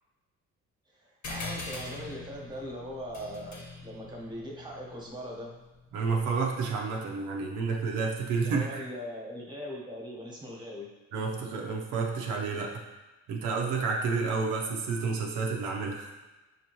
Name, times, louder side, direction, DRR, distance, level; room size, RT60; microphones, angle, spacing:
voice 1, 0.9-5.5 8.4-10.9, equal, 15° right, -2 dB, 1.1 m, -40 dB
sound 1, 1.2-6.2, left 3 dB, 70° left, 1.1 m, -42 dB
voice 2, 5.9-8.9 11.1-12.8 13.3-16.1, right 4 dB, 85° right, -1 dB, 0.7 m, -30 dB
5.7 x 2.8 x 3.0 m, 1.1 s
cardioid pair, 90°, 30 cm